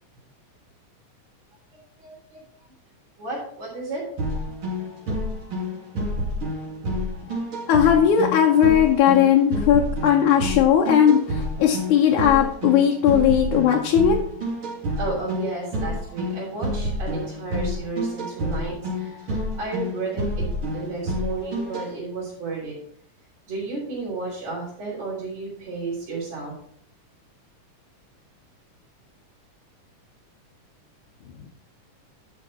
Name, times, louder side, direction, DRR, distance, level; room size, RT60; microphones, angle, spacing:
voice 1, 1.7-2.4 3.2-4.0 15.0-20.5 20.7-22.8 23.5-26.5, right 3 dB, 55° right, -9 dB, 4.9 m, -32 dB
sound 1, 4.2-21.9, equal, 40° right, 3.4 m, -29 dB
voice 2, 7.7-14.2, left 9 dB, 75° left, 1 dB, 2.3 m, -18 dB
11.5 x 6.4 x 4.3 m, 0.64 s
omnidirectional pair, 3.7 m